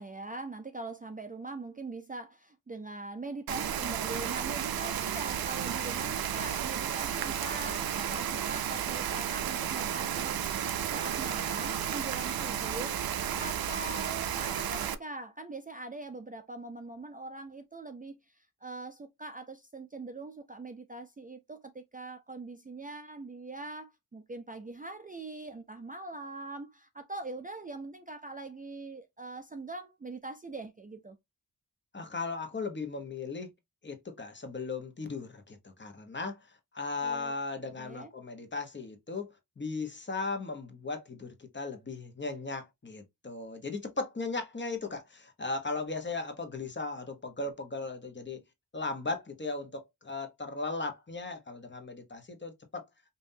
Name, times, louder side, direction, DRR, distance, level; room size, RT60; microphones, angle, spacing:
voice 1, 0.0-13.0 13.4-31.2 37.0-37.3 37.8-38.1, right 2 dB, 25° right, 0.4 m, -42 dB
Rain, 3.5-14.9, right 9 dB, 75° right, 0.5 m, -33 dB
voice 2, 31.9-33.5 33.8-48.4 48.7-52.9, left 3 dB, 30° left, 1.0 m, -37 dB
5.5 x 2.6 x 2.7 m
wide cardioid pair, 135°, 36 cm